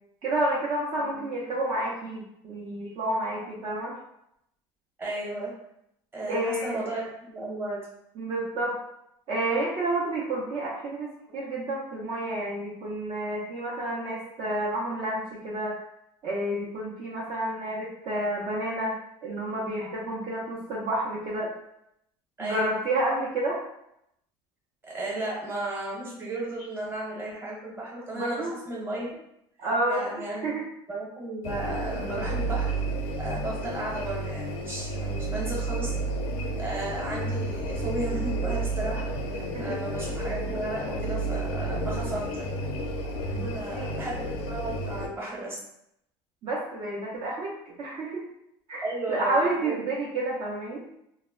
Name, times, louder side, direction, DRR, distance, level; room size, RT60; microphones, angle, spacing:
voice 1, 0.2-3.9 6.3-6.8 8.2-8.7 9.3-15.8 16.2-21.5 22.4-23.6 28.1-28.6 29.6-30.1 30.4-30.6 39.5-39.8 43.3-44.0 46.4-48.3 48.7-50.8, right 1 dB, 50° right, -5 dB, 0.6 m, -30 dB
voice 2, 5.0-5.5 6.1-7.8 18.2-18.4 22.4-22.7 24.8-29.2 29.6-30.5 30.9-35.9 36.6-42.5 43.5-45.6 48.8-49.8, right 2 dB, 20° right, -4 dB, 1.0 m, -34 dB
sound 1, 31.4-45.1, right 2 dB, 65° left, 0.5 m, -31 dB
2.1 x 2.1 x 3.5 m, 0.78 s
cardioid pair, 125°, 11 cm